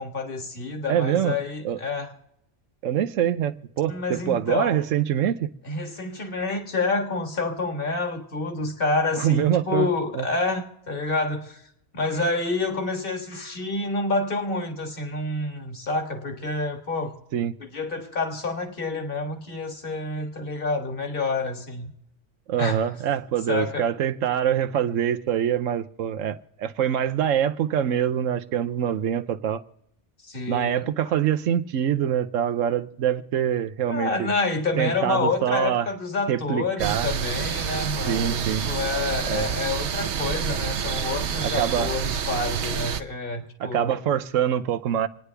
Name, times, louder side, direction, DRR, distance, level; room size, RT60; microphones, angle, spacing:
voice 1, 0.0-2.1 3.9-4.8 5.7-11.6 11.9-17.2 17.6-21.9 22.6-22.9 23.5-23.9 30.2-30.8 33.9-44.0, left 3 dB, 45° left, 1.8 m, -28 dB
voice 2, 0.9-1.4 1.6-1.8 2.8-5.5 9.2-9.9 10.1-10.3 17.3-17.5 22.5-29.6 30.5-34.3 34.8-35.9 36.3-37.1 38.1-38.7 39.3-39.5 41.4-41.9 43.6-45.1, right 9 dB, 85° right, 1.1 m, -24 dB
sound 1, 36.8-43.0, right 7 dB, 65° right, 1.0 m, -28 dB
28.0 x 9.8 x 3.4 m
omnidirectional pair, 1.3 m